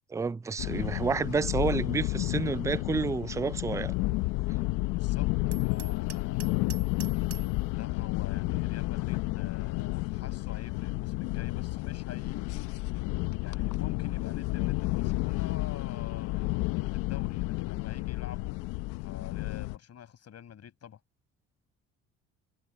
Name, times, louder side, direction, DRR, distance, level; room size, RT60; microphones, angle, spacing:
voice 1, 0.1-3.9, right 4 dB, 10° right, 0.4 m, -30 dB
sound 1, 0.6-19.8, left 21 dB, 85° left, 0.9 m, -31 dB
voice 2, 4.9-5.3 5.6-6.6 7.7-12.7 13.4-18.5 19.0-21.0, left 9 dB, 55° left, 5.6 m, -47 dB
Hammer, 5.5-7.6, right 11 dB, 50° right, 6.0 m, -46 dB
supercardioid pair, 70°, 31 cm